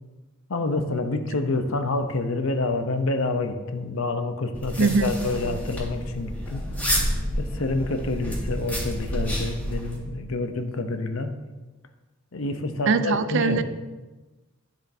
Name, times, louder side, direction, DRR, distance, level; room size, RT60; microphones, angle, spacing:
voice 1, 0.5-7.0 7.4-11.3 12.3-13.6, left 2 dB, 80° left, 7 dB, 0.7 m, -28 dB
sound 1, 4.5-10.0, equal, 10° left, 1.8 m, -29 dB
voice 2, 4.8-5.1 12.9-13.6, right 4 dB, 65° right, 12 dB, 0.5 m, -21 dB
10.0 x 7.2 x 2.7 m, 1.2 s
head